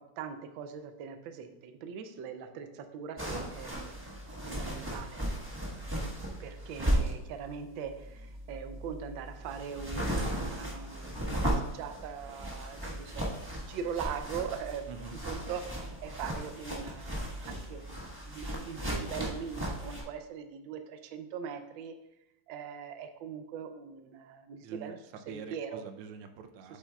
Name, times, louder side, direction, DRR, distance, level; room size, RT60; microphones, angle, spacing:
voice 1, 0.2-4.1 4.4-5.2 6.4-13.3 13.6-14.8 15.3-15.6 16.0-18.0 18.3-21.9 22.5-25.0 25.3-25.8, right 7 dB, 75° right, 8 dB, 1.3 m, -41 dB
Flappy bed covers, 3.2-20.0, right 1 dB, 15° right, 1.1 m, -36 dB
voice 2, 5.6-6.1 14.9-15.2 24.6-24.9 25.3-26.8, right 6 dB, 90° right, 7 dB, 1.6 m, -46 dB
8.4 x 8.3 x 2.3 m, 0.87 s
omnidirectional pair, 2.3 m